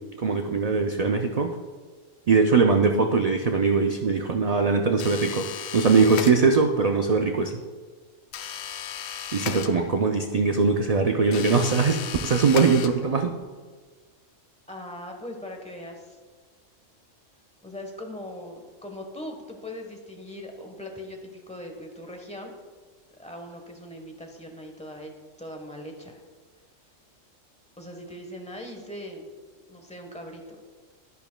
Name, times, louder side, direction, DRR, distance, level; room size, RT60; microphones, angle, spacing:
voice 1, 0.2-1.5 2.3-5.5 5.7-7.6 9.3-13.4, right 4 dB, 80° right, 4 dB, 0.3 m, -21 dB
sound 1, 5.0-6.8 8.3-10.2 11.3-13.3, left 9 dB, 90° left, 1.0 m, -35 dB
voice 2, 14.7-16.2 17.6-22.5 23.2-25.1 25.4-26.2 27.8-29.3 29.7-30.6, left 1 dB, 5° left, 2 dB, 1.0 m, -40 dB
11.0 x 11.0 x 2.2 m, 1.5 s
omnidirectional pair, 1.3 m